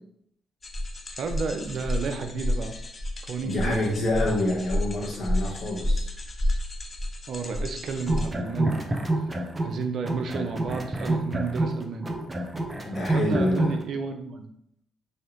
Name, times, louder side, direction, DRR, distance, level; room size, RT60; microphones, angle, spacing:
sound 1, 0.6-8.3, left 1 dB, 35° left, 0.8 m, -30 dB
voice 1, 1.1-2.8 3.2-3.8 7.3-9.3 9.6-12.1 12.9-14.5, right 4 dB, 60° right, 7 dB, 0.6 m, -32 dB
voice 2, 3.4-6.1 12.8-13.7, left 1 dB, 60° left, -5 dB, 1.2 m, -27 dB
sound 2, 8.0-9.8 10.0-13.8, right 2 dB, 30° right, 0.8 m, -27 dB
6.2 x 2.8 x 3.0 m, 0.72 s
hypercardioid pair, 50°, 0 cm